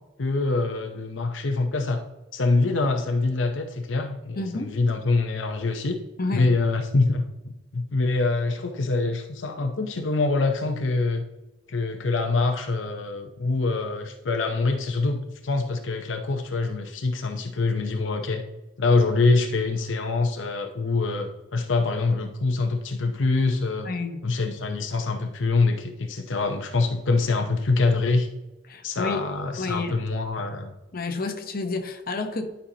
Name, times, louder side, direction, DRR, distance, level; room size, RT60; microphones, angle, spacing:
voice 1, 0.2-2.0 2.3-6.0 6.3-11.2 11.7-18.4 18.8-23.9 24.2-28.3 28.8-30.7, left 3 dB, 80° left, 5 dB, 0.7 m, -25 dB
voice 2, 4.4-4.8 6.2-6.5 23.8-24.2 28.7-29.3 29.6-30.0 30.9-32.5, left 3 dB, 50° left, 5 dB, 1.0 m, -30 dB
11.5 x 5.6 x 2.8 m, 1.0 s
head